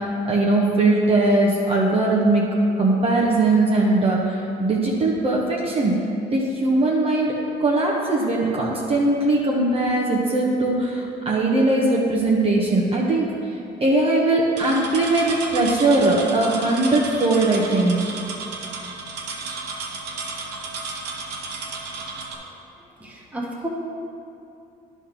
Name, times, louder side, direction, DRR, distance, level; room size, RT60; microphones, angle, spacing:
voice 1, 0.0-6.0 6.3-7.3 7.6-13.3 13.8-18.0, right 2 dB, 35° right, -4 dB, 1.1 m, -20 dB
sound 1, 14.6-22.3, right 4 dB, 80° right, 0.9 m, -33 dB
voice 2, 23.0-23.7, right 1 dB, 10° right, -4 dB, 1.4 m, -32 dB
10.5 x 3.5 x 6.0 m, 2.6 s
cardioid pair, 110°, 17 cm